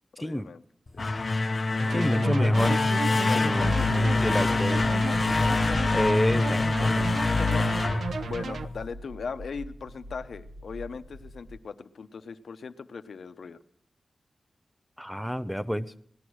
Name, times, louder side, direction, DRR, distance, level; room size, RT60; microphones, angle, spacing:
voice 1, 0.2-0.6 1.9-2.5 3.2-5.8 7.1-7.6 8.2-13.6, left 5 dB, 75° left, 10 dB, 0.8 m, -39 dB
sound 1, 0.9-8.8, left 3 dB, 40° left, 0.9 m, -25 dB
sound 2, 1.8-8.7, right 5 dB, 90° right, 0.7 m, -34 dB
voice 2, 1.9-2.7 3.3-4.8 5.9-7.4 15.0-15.9, equal, ahead, 14 dB, 0.6 m, -29 dB
sound 3, 4.7-11.6, equal, 45° right, 1.2 m, -43 dB
18.5 x 11.5 x 6.3 m, 0.65 s
wide cardioid pair, 140°, 0 cm